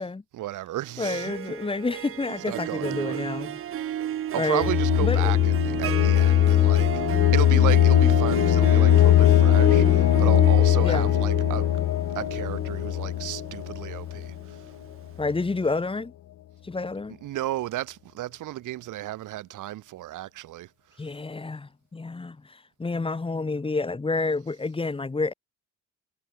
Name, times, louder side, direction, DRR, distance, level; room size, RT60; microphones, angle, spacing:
voice 1, 0.3-1.3 2.5-3.3 4.3-11.7 12.1-14.7 17.2-20.7, right 15 dB, 85° right, 3.9 m, -33 dB
Harp, 0.8-14.8, right 11 dB, 45° right, 0.5 m, -32 dB
voice 2, 1.0-3.6 4.3-4.7 5.0-5.4 10.8-11.1 15.2-16.1 16.6-17.2 21.0-25.3, left 3 dB, 20° left, 1.1 m, -29 dB
sound 1, 4.6-14.4, left 13 dB, 65° left, 1.0 m, -20 dB
cardioid pair, 90°, 30 cm